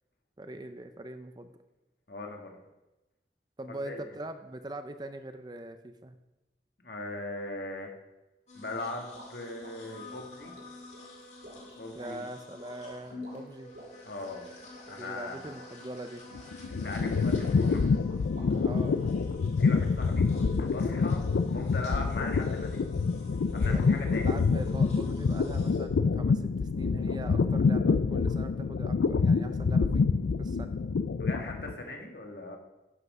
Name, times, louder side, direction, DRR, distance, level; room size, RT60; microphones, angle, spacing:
voice 1, 0.4-1.5 3.6-6.2 11.9-13.7 15.0-16.2 18.6-19.1 23.7-30.0 30.4-30.7, right 1 dB, 25° right, 9 dB, 0.5 m, -42 dB
voice 2, 2.1-2.6 3.7-4.1 6.8-7.9 8.5-10.5 11.8-12.2 14.0-14.5 14.8-15.5 16.7-17.8 19.6-21.2 21.5-22.8 23.5-24.4 31.2-32.6, left 2 dB, 65° left, 2 dB, 1.6 m, -39 dB
sound 1, 8.5-25.8, left 2 dB, 40° left, 2.2 m, -50 dB
sound 2, 9.1-19.0, right 1 dB, 70° right, 3.3 m, -53 dB
sound 3, 16.3-31.8, left 4 dB, 90° left, 0.4 m, -27 dB
11.0 x 5.8 x 5.3 m, 1.0 s
head